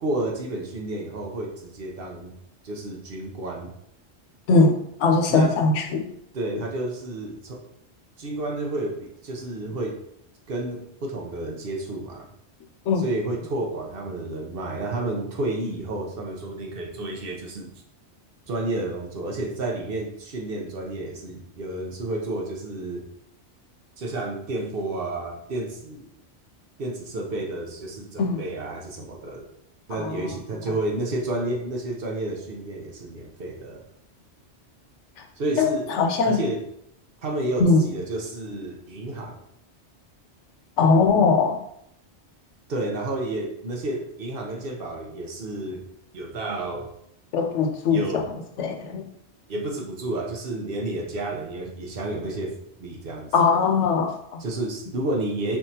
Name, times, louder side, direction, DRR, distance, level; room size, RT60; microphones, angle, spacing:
voice 1, 0.0-2.3 2.6-3.7 5.3-5.5 6.3-7.6 8.2-10.0 10.5-12.3 13.0-17.7 18.5-23.0 24.0-26.1 26.8-29.4 29.9-33.8 35.4-35.9 36.2-36.6 37.2-39.4 42.7-45.8 46.1-46.9 47.9-48.3 49.5-52.5 52.8-53.3 54.4-55.6, right 2 dB, 55° right, 0 dB, 0.9 m, -30 dB
voice 2, 4.5-6.1 12.9-13.0 28.2-28.4 30.0-30.1 35.6-36.5 37.6-37.8 40.8-41.6 47.3-48.0 48.6-49.1 53.3-54.4, left 4 dB, 85° left, 4 dB, 1.0 m, -20 dB
4.4 x 3.6 x 2.7 m, 0.74 s
omnidirectional pair, 1.2 m